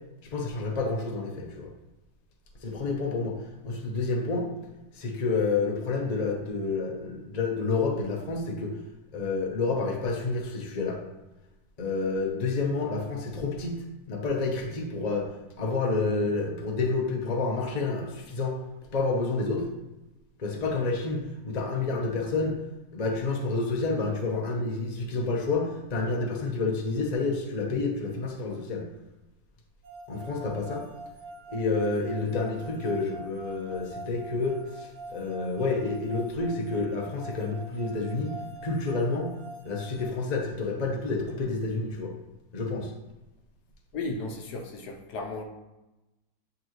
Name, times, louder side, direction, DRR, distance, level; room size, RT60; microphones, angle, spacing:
voice 1, 0.2-1.7 2.6-3.4 3.6-4.5 4.9-8.7 9.1-11.0 11.8-15.3 15.6-18.5 18.9-19.7 20.4-22.6 22.9-28.9 30.1-30.8 31.5-39.3 39.6-42.1 42.5-42.9, left 3 dB, 40° left, 0 dB, 0.6 m, -29 dB
sound 1, 29.8-40.1, right 2 dB, 55° right, 0.8 m, -44 dB
voice 2, 43.9-45.4, left 3 dB, 70° left, 2 dB, 1.2 m, -35 dB
8.3 x 3.8 x 3.1 m, 1.0 s
omnidirectional pair, 2.0 m